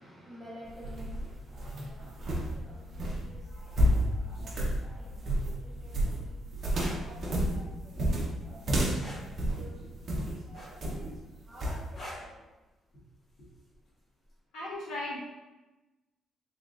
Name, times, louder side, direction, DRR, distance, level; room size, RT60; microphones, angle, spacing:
voice 1, 0.0-2.1 2.5-4.5 4.8-6.4 6.9-8.2 8.4-9.2 9.5-9.8 10.5-11.0 11.5-12.3, right 1 dB, 15° right, -6 dB, 1.0 m, -51 dB
sound 1, 0.6-10.4 10.8-11.2 11.6-11.8, equal, 40° right, 0.7 m, -30 dB
voice 2, 3.4-4.1 14.5-15.2, left 2 dB, 85° left, -6 dB, 1.3 m, -39 dB
sound 2, 6.6-7.0 9.0-9.3 10.5-11.0 11.9-12.3 13.7-13.9, left 1 dB, 40° left, 1.2 m, -43 dB
3.6 x 3.5 x 2.5 m, 1.1 s
cardioid pair, 160°, 0 cm